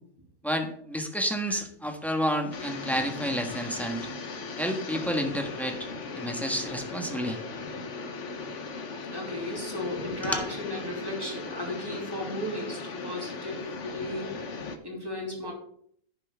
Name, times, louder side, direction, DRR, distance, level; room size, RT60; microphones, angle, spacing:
voice 1, 0.4-4.1 4.6-5.9 6.1-7.4 10.2-10.4, equal, ahead, 4 dB, 1.3 m, -30 dB
sound 1, 2.5-14.8, left 4 dB, 55° left, 1.3 m, -37 dB
voice 2, 9.1-15.5, left 1 dB, 15° right, -1 dB, 2.9 m, -35 dB
11.0 x 9.7 x 3.6 m, 0.64 s
omnidirectional pair, 1.6 m